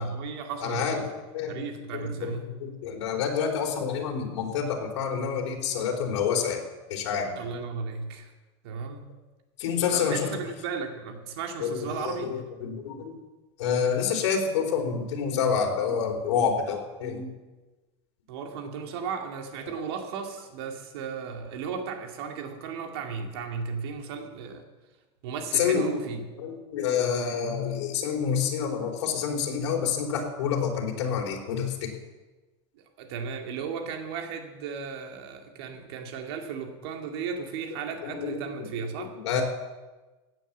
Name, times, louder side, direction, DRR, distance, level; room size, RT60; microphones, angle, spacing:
voice 1, 0.0-1.1 1.5-2.6 7.4-8.3 8.6-9.1 9.9-12.3 18.3-24.6 25.2-26.2 32.7-39.2, right 5 dB, 60° right, 4 dB, 2.4 m, -35 dB
voice 2, 0.6-1.6 1.9-6.6 6.9-7.4 9.6-10.3 11.6-13.2 13.6-17.3 19.6-19.8 25.5-25.9 26.4-31.9 38.0-38.5 39.0-39.4, left 6 dB, 80° left, 1 dB, 4.0 m, -28 dB
16.0 x 9.3 x 7.4 m, 1.2 s
supercardioid pair, 175°, 15 cm